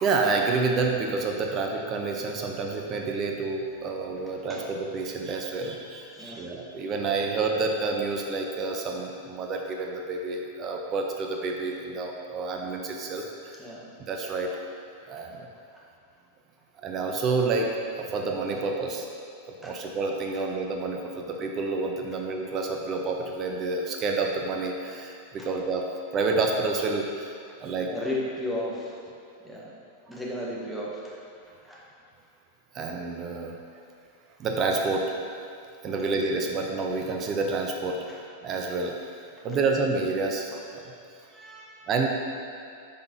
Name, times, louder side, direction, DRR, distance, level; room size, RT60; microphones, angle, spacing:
voice 1, 0.0-13.6 14.0-14.7 15.1-15.5 16.8-19.1 19.5-25.9 26.1-27.3 27.6-27.9 32.7-33.6 34.4-35.1 35.8-38.1 38.4-39.0 39.4-40.9 41.9-42.1, right 3 dB, 30° right, 2 dB, 0.6 m, -29 dB
voice 2, 4.2-4.6 6.1-6.5 13.6-13.9 19.6-19.7 25.4-25.5 27.9-29.0 29.4-29.7 30.1-31.0 31.6-31.8 38.1-38.2 39.5-39.6 41.3-41.9, left 1 dB, ahead, -6 dB, 1.4 m, -34 dB
8.6 x 5.9 x 2.8 m, 2.4 s
figure-of-eight pair, 90°, 0 cm